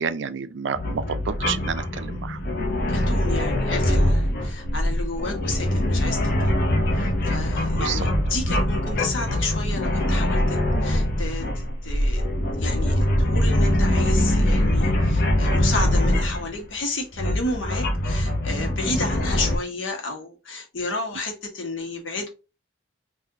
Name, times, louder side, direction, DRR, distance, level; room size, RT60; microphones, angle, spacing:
voice 1, 0.0-2.4 7.7-8.1, right 6 dB, 70° right, 0.4 m, -29 dB
sound 1, 0.7-16.5 17.1-19.6, left 1 dB, 55° left, 0.7 m, -23 dB
voice 2, 2.9-6.5 6.9-12.2 12.6-22.3, left 2 dB, 85° left, 1.1 m, -32 dB
3.7 x 2.6 x 2.7 m
head